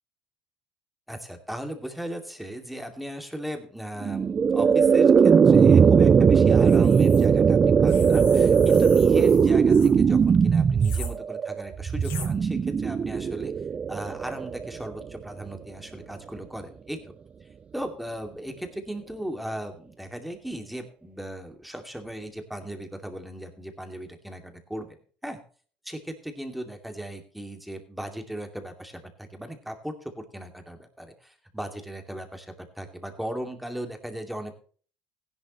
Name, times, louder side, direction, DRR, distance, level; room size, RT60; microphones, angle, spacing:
voice 1, 1.1-13.5 13.9-17.0 17.7-25.0 25.2-25.4 25.8-34.5, right 1 dB, ahead, 5 dB, 2.5 m, -37 dB
sound 1, 4.0-15.2, right 6 dB, 30° right, 0.4 m, -19 dB
sound 2, 6.6-7.3 7.9-9.9 10.8-11.1 12.0-12.3, left 7 dB, 75° left, 5.7 m, -41 dB
15.5 x 11.0 x 3.2 m, 0.43 s
supercardioid pair, 105°, 4 cm